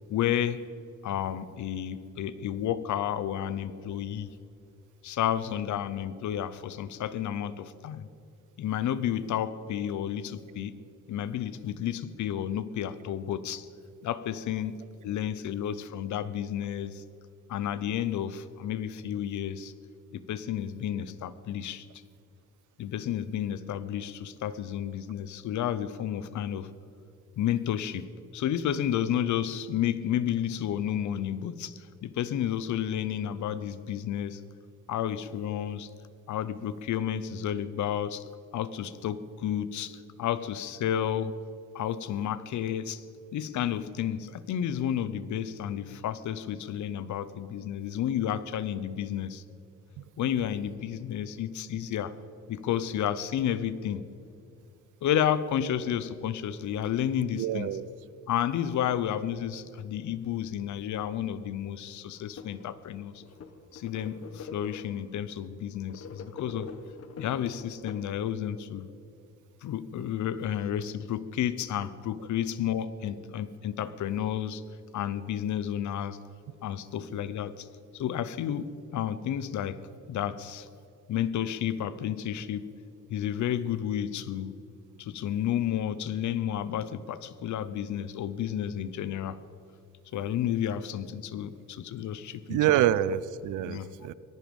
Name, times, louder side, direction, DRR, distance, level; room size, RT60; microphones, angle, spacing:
voice 1, 0.1-0.6 1.0-4.3 5.0-8.1 8.6-10.8 11.1-13.7 14.0-14.8 15.0-17.0 17.5-19.7 20.1-21.9 22.8-26.7 27.4-34.4 34.9-35.9 36.3-38.2 38.5-41.4 41.7-43.0 43.3-49.4 50.2-52.1 52.5-54.0 55.0-58.0 58.3-63.2 63.7-66.7 67.2-68.9 69.6-74.6 74.9-76.2 76.6-77.7 77.9-79.8 80.1-80.7 81.1-82.7 83.1-84.6 85.0-89.4 90.1-92.9 93.6-93.9, left 10 dB, 75° left, 16 dB, 0.9 m, -31 dB
voice 2, 57.4-57.8 92.5-94.1, right 13 dB, 80° right, 18 dB, 0.6 m, -26 dB
sound 1, 62.2-62.7 63.1-65.1 65.7-68.5, left 5 dB, 50° left, 1.3 m, -44 dB
18.0 x 13.5 x 5.4 m, 2.6 s
cardioid pair, 90°, 30 cm